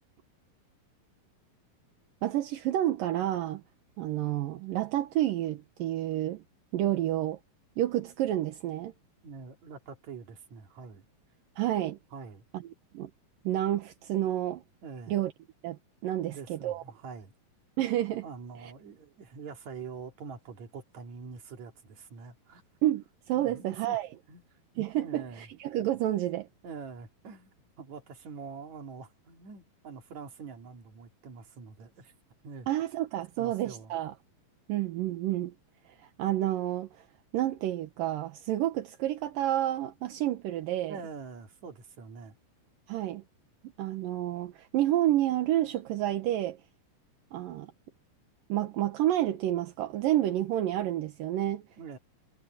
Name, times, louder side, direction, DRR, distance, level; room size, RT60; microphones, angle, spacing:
voice 1, 2.2-3.6 4.0-6.4 6.7-7.4 7.8-8.9 11.6-12.0 12.9-13.1 13.4-14.6 15.1-15.3 15.6-16.8 17.8-18.3 18.6-18.7 22.8-24.1 24.8-26.5 32.7-34.1 34.7-35.5 36.0-36.9 37.3-41.0 42.9-43.2 43.8-46.6 47.3-47.7 48.5-51.6, right 13 dB, 75° right, 2.8 m, -29 dB
voice 2, 9.2-11.1 12.1-12.5 14.8-15.1 16.1-17.3 18.2-22.6 23.3-24.0 24.3-24.4 25.0-25.5 26.6-32.1 32.4-32.7 33.4-34.0 40.7-42.4 51.8-52.0, right 5 dB, 55° right, 3.7 m, -45 dB
omnidirectional pair, 4.1 m